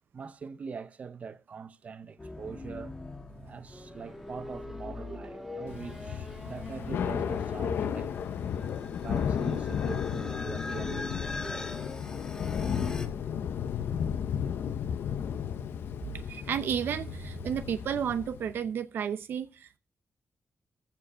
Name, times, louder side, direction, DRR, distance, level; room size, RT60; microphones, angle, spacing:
voice 1, 0.1-3.0 3.5-8.1 9.0-11.9, right 5 dB, 40° right, 0.7 m, -43 dB
sound 1, 2.2-13.1, left 3 dB, 20° left, 1.3 m, -42 dB
Race car auto racing / Accelerating revving vroom, 3.7-8.9, equal, 10° right, 1.9 m, -48 dB
Thunder / Rain, 5.7-18.6, left 8 dB, 90° left, 0.9 m, -33 dB
voice 2, 16.3-19.8, right 8 dB, 80° right, 0.7 m, -32 dB
15.0 x 5.1 x 6.0 m
wide cardioid pair, 160°, 4 cm